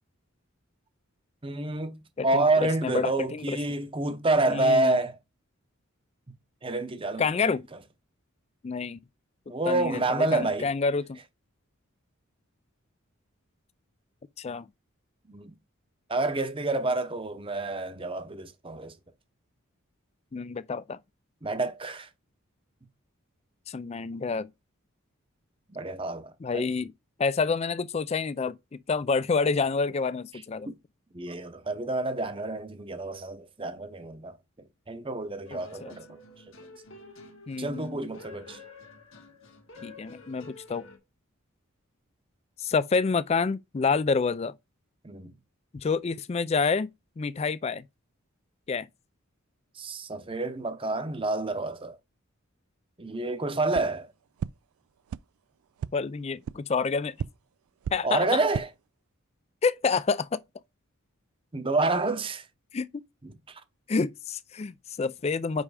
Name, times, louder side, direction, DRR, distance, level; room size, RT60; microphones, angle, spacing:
voice 1, 1.4-2.0 2.2-5.2 6.6-7.2 9.5-10.7 15.3-15.5 16.1-18.9 21.4-22.1 25.7-26.6 31.1-34.3 34.9-36.2 37.6-38.6 45.0-45.3 49.8-51.9 53.0-54.1 58.0-58.7 61.5-62.4 63.2-63.3, right 2 dB, 25° right, 0.8 m, -28 dB
voice 2, 2.2-3.6 4.5-5.0 7.2-7.6 8.6-9.0 9.7-11.2 14.4-14.7 20.3-21.0 23.7-24.5 26.4-26.9 27.2-30.7 35.5-35.9 37.5-38.0 39.8-40.8 42.6-44.5 45.7-46.9 47.2-47.8 48.7-48.9 55.9-57.1 57.9-58.4 59.6-60.4 62.7-62.9 63.9-65.6, left 4 dB, 30° left, 0.3 m, -28 dB
sound 1, 35.4-41.0, left 2 dB, 65° left, 1.7 m, -49 dB
sound 2, 53.7-53.8 54.4-54.5 55.1-55.2 55.8-55.9 56.4-56.5 57.2-57.3 57.8-57.9 58.4-58.6, right 8 dB, 90° right, 0.3 m, -32 dB
5.5 x 4.8 x 4.8 m
head